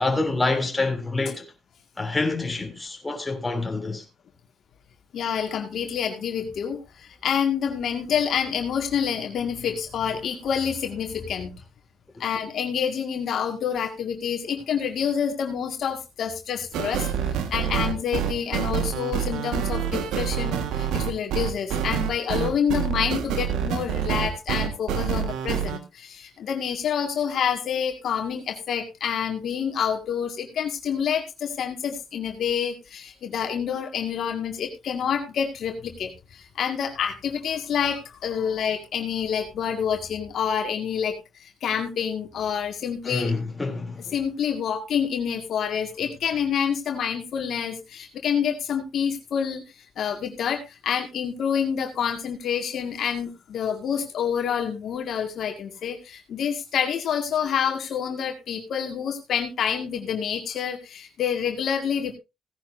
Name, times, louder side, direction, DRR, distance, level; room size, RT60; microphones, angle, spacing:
voice 1, 0.0-1.5 2.0-4.0 12.2-12.3 43.0-44.1, left 3 dB, 15° left, 3.1 m, -27 dB
voice 2, 5.1-11.5 12.2-17.1 17.5-43.3 44.1-62.1, left 8 dB, 65° left, 2.0 m, -28 dB
sound 1, 16.7-25.8, right 8 dB, 90° right, 1.6 m, -27 dB
17.0 x 10.0 x 2.7 m
cardioid pair, 90°, 0 cm